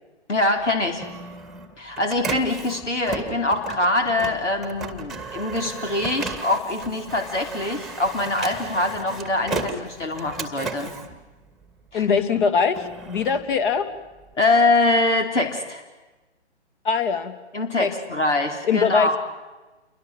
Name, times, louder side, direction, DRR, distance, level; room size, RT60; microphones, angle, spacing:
voice 1, 0.3-1.0 1.8-10.9 11.9-12.2 14.4-15.8 17.5-19.2, left 2 dB, 85° left, 4 dB, 4.5 m, -23 dB
Printer, 0.6-12.0 12.5-14.3, right 3 dB, ahead, 1.7 m, -35 dB
voice 2, 11.9-13.9 16.8-17.3 17.8-17.9 18.6-19.2, left 6 dB, 45° left, 10 dB, 2.6 m, -22 dB
28.5 x 23.5 x 7.5 m, 1.2 s
figure-of-eight pair, 140°, 35 cm